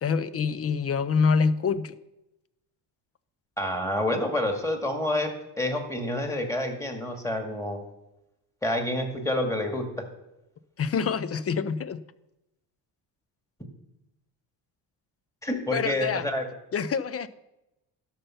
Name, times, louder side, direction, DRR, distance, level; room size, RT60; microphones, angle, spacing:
voice 1, 0.0-1.9 10.8-12.0 15.7-16.2 16.7-17.3, left 5 dB, 30° left, 15 dB, 0.5 m, -26 dB
voice 2, 3.6-7.8 8.6-10.0 15.4-16.4, left 1 dB, 5° left, 4 dB, 1.9 m, -28 dB
12.5 x 5.6 x 5.7 m, 0.92 s
cardioid pair, 95°, 47 cm